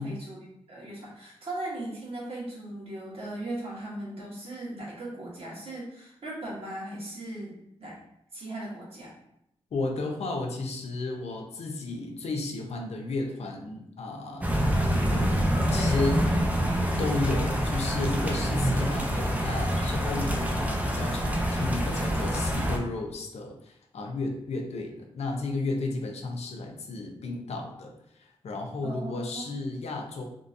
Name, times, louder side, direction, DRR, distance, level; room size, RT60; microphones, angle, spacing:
voice 1, 0.0-8.0 8.3-9.1 28.8-29.5, right 1 dB, 65° right, -5 dB, 1.3 m, -38 dB
voice 2, 9.7-14.5 15.1-15.4 15.7-16.3 17.0-30.3, left 3 dB, 90° left, 2 dB, 0.6 m, -33 dB
sound 1, 14.4-22.8, equal, 15° right, 0.5 m, -26 dB
3.6 x 2.6 x 2.5 m, 0.78 s
wide cardioid pair, 90°, 11 cm